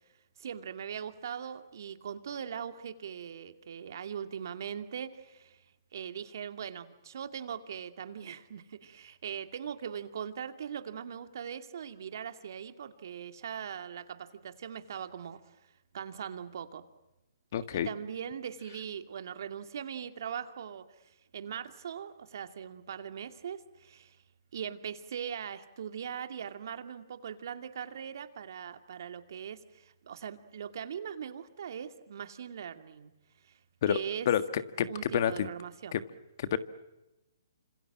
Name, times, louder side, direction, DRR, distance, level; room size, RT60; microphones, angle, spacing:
voice 1, 0.4-5.6 5.9-15.4 15.9-16.8 17.7-24.2 24.5-33.1 33.4-33.6 33.9-34.3 34.9-36.0, right 8 dB, 60° right, 8 dB, 2.4 m, -40 dB
voice 2, 17.5-17.9 33.8-34.0 34.2-35.5 35.9-36.0 36.4-36.6, left 9 dB, 50° left, 12 dB, 1.7 m, -29 dB
28.5 x 26.0 x 7.5 m, 0.98 s
hypercardioid pair, 145°, 2 cm